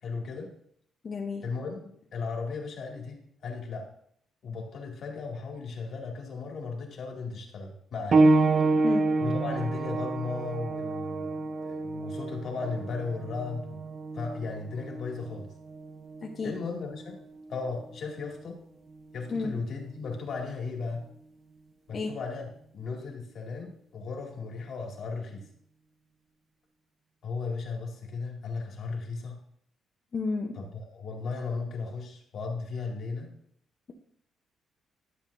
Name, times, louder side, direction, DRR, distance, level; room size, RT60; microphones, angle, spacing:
voice 1, 0.0-0.5 1.4-3.9 4.4-8.2 9.2-13.9 14.1-15.5 16.4-17.2 17.5-18.6 19.1-21.0 21.9-25.4 27.2-29.4 30.5-33.3, left 4 dB, 60° left, 0 dB, 2.3 m, -36 dB
voice 2, 1.0-1.4 8.8-9.1 16.2-16.5 19.3-19.6 21.9-22.2 30.1-30.6, left 4 dB, 40° left, 0 dB, 1.0 m, -32 dB
sound 1, 8.1-18.3 19.3-19.4 20.1-20.2, right 3 dB, 40° right, 0.8 m, -28 dB
12.5 x 7.4 x 2.7 m, 0.67 s
cardioid pair, 120°, 0 cm